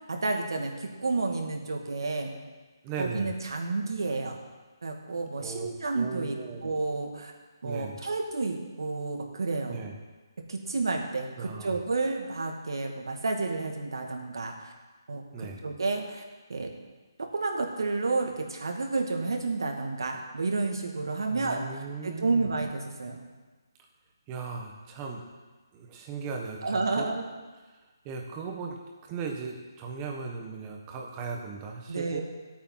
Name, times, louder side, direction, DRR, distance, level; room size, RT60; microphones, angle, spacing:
voice 1, 0.1-2.3 3.0-4.4 4.8-6.4 6.6-7.3 7.6-9.8 10.4-14.7 15.1-15.2 15.6-16.2 16.5-16.7 17.2-21.6 22.0-23.2 26.6-27.2 31.9-32.2, right 3 dB, 75° right, 2 dB, 2.4 m, -30 dB
voice 2, 2.8-3.3 5.4-5.7 5.9-6.6 7.6-7.9 9.7-10.0 11.4-11.8 15.3-15.6 21.3-22.5 24.3-25.2 25.7-27.1 27.7-27.8 28.0-28.8 29.1-32.2, right 5 dB, 15° right, 2 dB, 1.4 m, -37 dB
14.5 x 8.8 x 5.8 m, 1.3 s
hypercardioid pair, 170°, 2 cm